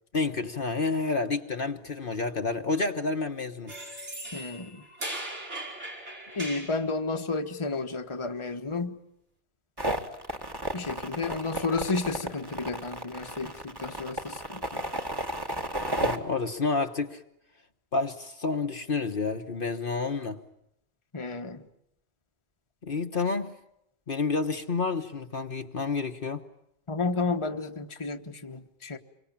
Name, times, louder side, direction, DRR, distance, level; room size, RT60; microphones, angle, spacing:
voice 1, 0.1-3.7 16.0-17.2 17.9-20.4 22.8-23.5 24.1-26.4, left 4 dB, 50° left, 1.4 m, -29 dB
sound 1, 3.7-6.8, right 1 dB, 90° right, 5.6 m, -38 dB
voice 2, 4.3-4.8 6.3-9.0 10.7-14.8 21.1-21.6 26.9-29.0, left 3 dB, 25° left, 1.4 m, -32 dB
sound 2, 9.8-16.2, right 1 dB, 20° right, 2.2 m, -32 dB
27.0 x 24.0 x 8.8 m
omnidirectional pair, 1.2 m